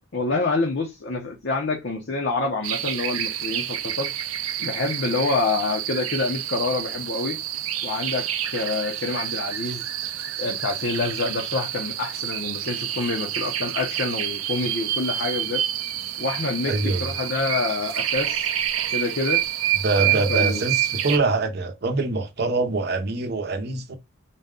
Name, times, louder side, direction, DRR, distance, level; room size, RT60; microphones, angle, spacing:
voice 1, 0.1-4.1 4.6-7.4 7.8-9.9 10.4-15.6 16.2-18.5 18.9-19.4 20.0-20.7, left 3 dB, 55° left, 0.7 m, -27 dB
sound 1, 2.6-21.2, right 11 dB, 85° right, 0.4 m, -28 dB
voice 2, 16.7-17.0 19.8-24.0, right 3 dB, 50° right, 0.7 m, -24 dB
4.0 x 2.2 x 3.7 m
head